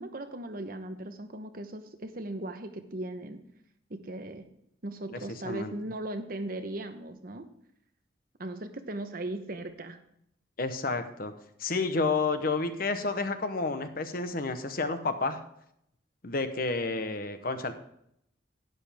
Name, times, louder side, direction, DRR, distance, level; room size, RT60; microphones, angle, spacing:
voice 1, 0.0-3.4 3.9-4.4 4.8-7.5 8.4-10.0, right 1 dB, 55° right, 8 dB, 1.0 m, -38 dB
voice 2, 10.6-11.3 11.6-15.4 16.2-17.7, left 3 dB, 55° left, 9 dB, 1.0 m, -30 dB
12.0 x 9.7 x 3.5 m, 0.74 s
head